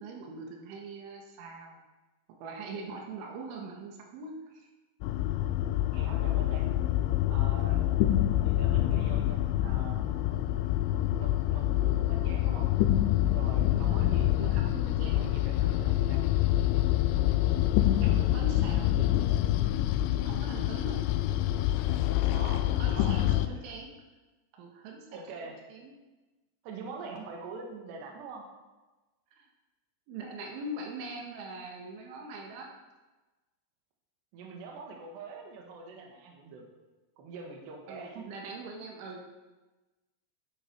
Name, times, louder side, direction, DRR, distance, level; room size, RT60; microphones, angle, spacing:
voice 1, 0.0-1.8 2.4-4.7 7.7-8.1 13.7-15.3 18.0-19.1 20.3-21.0 22.8-23.9 24.6-25.9 29.4-29.5 30.1-32.7 37.9-39.3, right 2 dB, 85° right, 0 dB, 4.2 m, -42 dB
sound 1, 5.0-23.5, left 13 dB, 85° left, 2.9 m, -26 dB
voice 2, 5.9-6.7 7.3-7.8 8.4-10.1 11.2-12.7 13.3-14.6 15.0-16.2 22.3-23.6 25.1-25.6 26.6-28.5 34.3-36.6 37.2-38.3, right 4 dB, 70° right, 1 dB, 3.8 m, -44 dB
18.0 x 10.0 x 4.7 m, 1.2 s
omnidirectional pair, 5.4 m